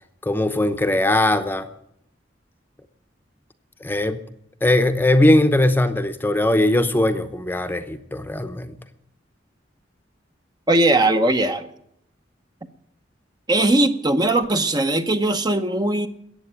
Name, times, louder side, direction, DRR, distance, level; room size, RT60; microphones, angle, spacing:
voice 1, 0.2-1.7 3.8-4.2 4.6-8.7, left 1 dB, 10° left, 9 dB, 0.8 m, -20 dB
voice 2, 10.7-11.7 13.5-16.1, right 2 dB, 20° right, 8 dB, 0.8 m, -19 dB
14.5 x 8.8 x 9.9 m, 0.75 s
head